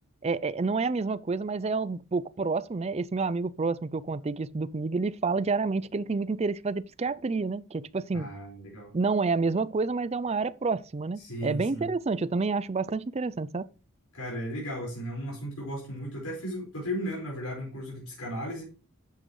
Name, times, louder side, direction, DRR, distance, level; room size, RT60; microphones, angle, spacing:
voice 1, 0.2-8.3 8.9-13.7, right 4 dB, 30° right, 0.4 m, -29 dB
voice 2, 8.1-8.9 11.2-11.9 14.1-18.6, equal, 85° left, 4.9 m, -35 dB
11.5 x 7.6 x 3.1 m
head